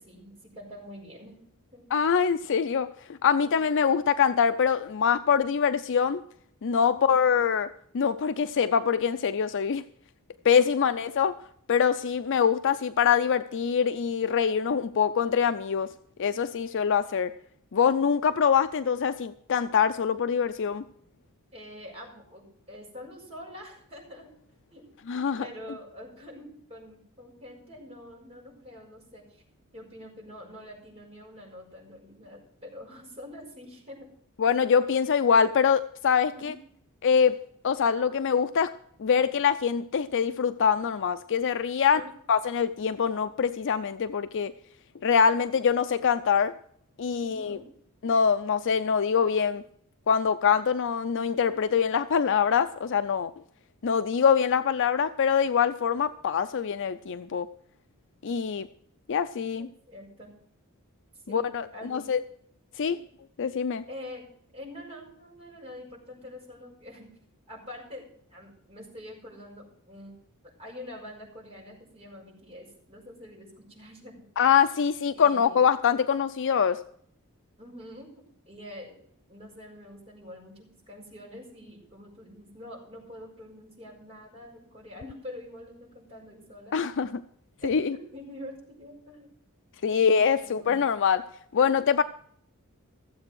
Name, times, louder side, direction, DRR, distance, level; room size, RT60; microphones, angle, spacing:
voice 1, 0.0-1.4 1.7-1.8 3.4-3.6 6.9-7.2 21.5-24.3 24.7-24.8 25.4-29.4 29.7-34.1 36.3-36.6 41.9-42.1 47.2-47.7 59.6-60.3 61.3-62.1 63.9-64.2 64.5-67.1 67.5-70.1 70.4-74.2 75.1-75.8 77.6-78.1 78.5-79.0 79.3-86.8 87.6-89.3 89.9-90.9, left 1 dB, 30° right, -2 dB, 5.8 m, -45 dB
voice 2, 1.9-2.9 3.2-6.2 6.6-7.7 7.9-9.8 10.4-11.3 11.7-15.9 16.2-17.3 17.7-20.8 25.1-25.5 34.4-36.5 37.0-37.4 37.6-38.7 39.0-42.0 42.3-44.5 45.0-46.5 47.0-47.6 48.0-49.6 50.1-53.3 53.8-57.5 58.2-58.7 59.1-59.7 61.3-61.7 61.9-62.2 62.8-63.0 63.4-63.8 74.4-76.8 86.7-87.2 87.6-88.0 89.8-91.2 91.5-92.0, left 7 dB, 55° left, 11 dB, 0.5 m, -24 dB
15.0 x 7.7 x 6.2 m, 0.64 s
head